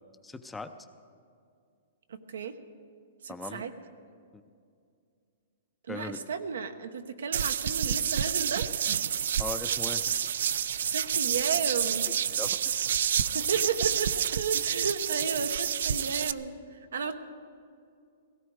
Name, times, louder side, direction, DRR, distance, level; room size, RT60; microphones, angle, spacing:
voice 1, 0.2-0.7 3.3-3.6 4.3-4.4 5.9-6.2 9.4-10.0 12.3-12.6, left 3 dB, 5° left, 9 dB, 0.5 m, -38 dB
voice 2, 2.1-2.5 3.2-3.7 5.9-8.7 10.8-12.1 13.3-17.1, right 6 dB, 90° right, 8 dB, 1.1 m, -33 dB
sound 1, 7.3-16.3, right 8 dB, 70° right, 0.4 m, -29 dB
17.0 x 17.0 x 4.8 m, 2.3 s
hypercardioid pair, 155°, 0 cm